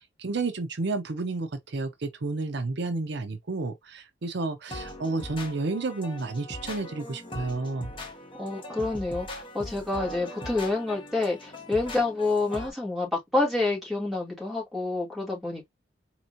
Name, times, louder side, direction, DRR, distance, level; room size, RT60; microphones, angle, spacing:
voice 1, 0.2-7.9, right 3 dB, 65° right, 0.6 m, -31 dB
sound 1, 4.7-12.7, left 1 dB, 30° left, 1.2 m, -40 dB
voice 2, 8.4-15.7, left 2 dB, ahead, 2.3 m, -28 dB
4.3 x 3.0 x 2.5 m
head